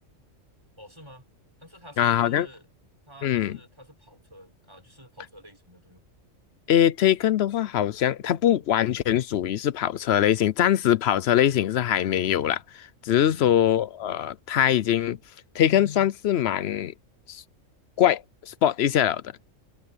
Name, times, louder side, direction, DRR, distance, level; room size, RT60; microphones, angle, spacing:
voice 1, 0.8-1.3 1.6-2.7 3.1-6.1 13.1-13.6, equal, 20° right, 4.1 m, -49 dB
voice 2, 2.0-2.5 3.2-3.6 6.7-15.2 15.5-16.9 17.3-17.4 18.0-19.2, left 11 dB, 60° left, 0.8 m, -22 dB
omnidirectional pair, 1.4 m